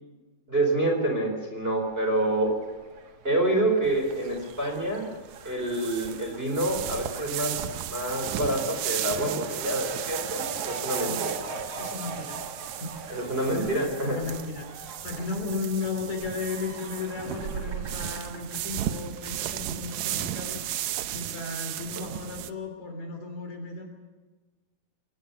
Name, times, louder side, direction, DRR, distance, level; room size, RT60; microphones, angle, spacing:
voice 1, 0.5-2.5 3.2-5.1 5.4-11.3 13.1-14.2 22.0-22.1, right 1 dB, 15° right, 2 dB, 4.2 m, -27 dB
Fowl, 1.8-19.1, right 4 dB, 45° right, 2.8 m, -42 dB
sound 1, 3.8-22.5, right 12 dB, 75° right, 1.6 m, -35 dB
voice 2, 11.8-12.4 12.8-13.6 14.0-20.6 21.1-23.9, left 4 dB, 50° left, 5 dB, 4.4 m, -35 dB
24.5 x 19.5 x 6.9 m, 1.3 s
omnidirectional pair, 4.2 m